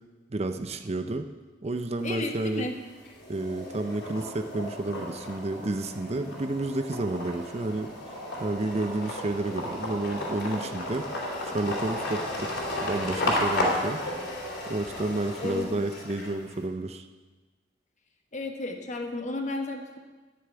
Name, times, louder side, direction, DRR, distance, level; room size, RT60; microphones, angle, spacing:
voice 1, 0.3-1.3 1.6-2.7 3.3-11.1 11.4-12.5 12.8-14.0 14.7-17.0, right 2 dB, 35° right, 7 dB, 0.6 m, -31 dB
sound 1, 2.0-2.6 3.0-16.6, left 1 dB, 60° left, 2.9 m, -33 dB
voice 2, 2.0-2.8 15.4-15.7 18.3-20.0, left 2 dB, 40° left, 4 dB, 1.4 m, -33 dB
11.0 x 6.9 x 9.1 m, 1.3 s
head